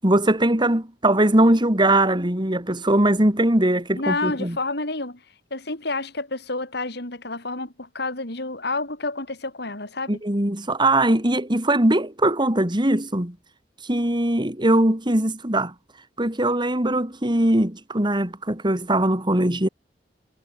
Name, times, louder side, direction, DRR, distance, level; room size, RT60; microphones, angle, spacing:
voice 1, 0.0-4.6 10.1-13.3 13.9-15.7 16.2-19.7, right 1 dB, 25° right, 3.3 m, -21 dB
voice 2, 3.9-5.2 5.5-10.2, left 3 dB, 65° left, 6.1 m, -29 dB
head